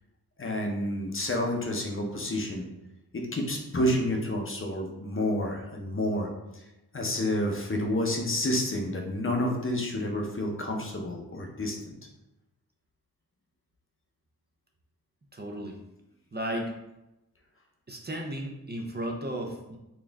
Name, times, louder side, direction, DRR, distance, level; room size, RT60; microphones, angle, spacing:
voice 1, 0.4-2.6 3.1-6.6 6.9-11.9, left 1 dB, 35° left, 1 dB, 0.7 m, -29 dB
voice 2, 15.3-15.7 16.3-16.7 17.9-19.8, right 1 dB, 30° right, 1 dB, 0.5 m, -34 dB
4.2 x 2.4 x 3.4 m, 0.94 s
wide cardioid pair, 80°, 36 cm